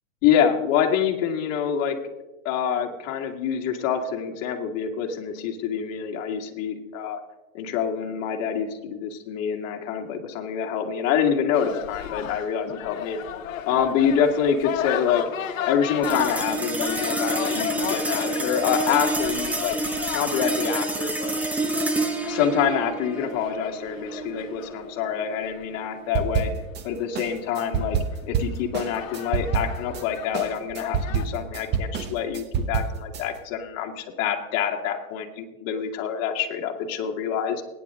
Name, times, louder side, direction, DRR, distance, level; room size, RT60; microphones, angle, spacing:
voice 1, 0.2-2.0 2.5-7.2 7.5-13.2 13.6-15.2 15.6-19.7 20.1-21.4 22.2-26.5 26.8-28.0 28.3-37.6, left 8 dB, 35° left, 3 dB, 2.0 m, -26 dB
sound 1, 11.5-25.8 27.3-27.4 27.8-28.2 28.8-31.3, left 10 dB, 70° left, 1.2 m, -33 dB
sound 2, 16.0-26.6, right 2 dB, 5° right, 0.5 m, -29 dB
sound 3, 26.1-26.8 27.1-30.0 30.3-33.2, right 6 dB, 25° right, 0.9 m, -27 dB
21.0 x 9.6 x 3.7 m, 1.1 s
hypercardioid pair, 135°, 40 cm